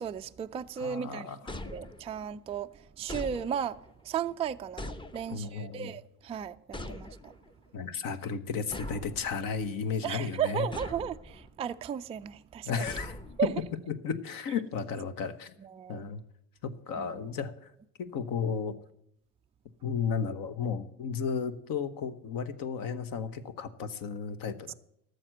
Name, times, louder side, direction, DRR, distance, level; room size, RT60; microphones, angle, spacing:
voice 1, 0.0-1.3 1.7-2.7 3.0-3.8 4.0-7.3 10.0-12.8 13.4-13.5 15.6-16.0 17.0-17.1 24.7-24.8, right 8 dB, 15° right, 0.3 m, -35 dB
voice 2, 0.8-1.6 5.3-6.0 7.7-10.7 12.7-13.5 13.9-15.5 15.9-16.2 16.6-17.7 18.0-18.8 19.8-24.7, left 6 dB, 50° left, 1.0 m, -34 dB
sound 1, 1.5-2.4 3.1-3.9 4.8-5.6 6.7-7.5 8.7-9.7 10.7-11.5 12.9-13.8, left 1 dB, 10° left, 0.8 m, -42 dB
13.0 x 6.5 x 7.7 m
hypercardioid pair, 70°, 43 cm